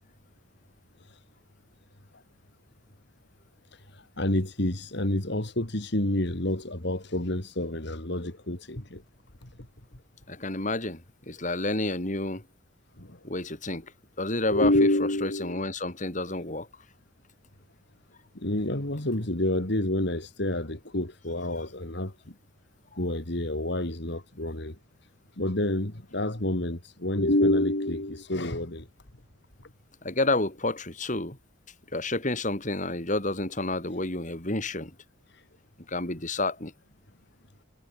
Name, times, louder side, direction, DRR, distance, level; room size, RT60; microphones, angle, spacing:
voice 1, 3.7-9.0 9.4-9.5 13.0-13.2 14.5-15.7 18.3-22.3 22.9-24.8 25.4-28.9 35.3-35.4, left 1 dB, 60° left, 2.9 m, -28 dB
voice 2, 10.3-12.4 13.2-13.9 14.2-14.7 15.2-16.7 22.9-23.0 30.0-31.4 31.9-34.9 35.9-36.7, left 2 dB, 40° left, 4.7 m, -30 dB
head